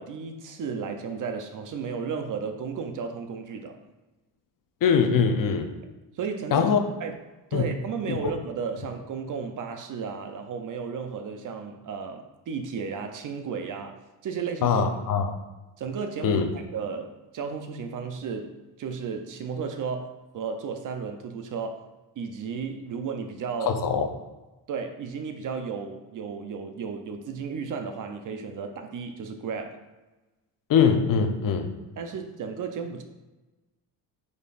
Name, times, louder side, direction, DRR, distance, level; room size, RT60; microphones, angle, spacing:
voice 1, 0.0-3.8 6.1-6.7 7.0-7.2 7.5-14.8 15.8-21.9 22.2-23.8 24.7-29.8 32.0-33.0, right 5 dB, 45° right, 0.6 m, -34 dB
voice 2, 4.8-5.7 6.5-6.8 7.5-7.6 8.1-8.3 14.6-15.3 16.2-16.5 23.6-24.1 30.7-31.7, left 6 dB, 45° left, 0.6 m, -22 dB
5.1 x 4.1 x 2.5 m
cardioid pair, 85°, 45 cm